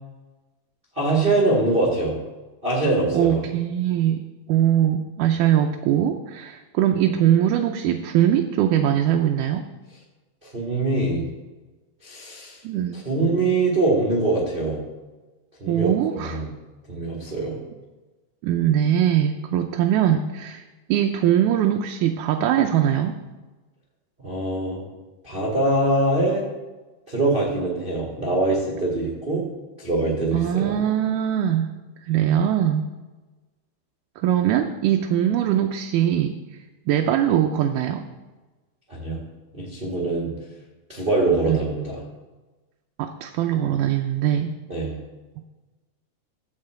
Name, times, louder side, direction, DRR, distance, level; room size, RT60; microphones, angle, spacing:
voice 1, 0.9-2.1 2.6-3.4 10.4-11.2 12.0-12.6 12.9-14.8 15.6-16.5 16.9-17.6 24.2-24.8 25.2-26.5 27.1-29.4 29.8-30.7 38.9-39.2 39.5-40.3 40.9-42.0 44.7-45.0, right 2 dB, 30° right, -5 dB, 1.0 m, -23 dB
voice 2, 3.1-4.2 4.5-9.7 12.6-13.0 15.7-16.4 18.4-20.6 20.9-23.2 30.3-31.7 32.1-32.9 34.2-36.4 36.9-38.0 41.5-41.6 43.0-44.5, right 10 dB, 80° right, 4 dB, 2.1 m, -21 dB
13.0 x 4.4 x 7.8 m, 1.2 s
omnidirectional pair, 3.8 m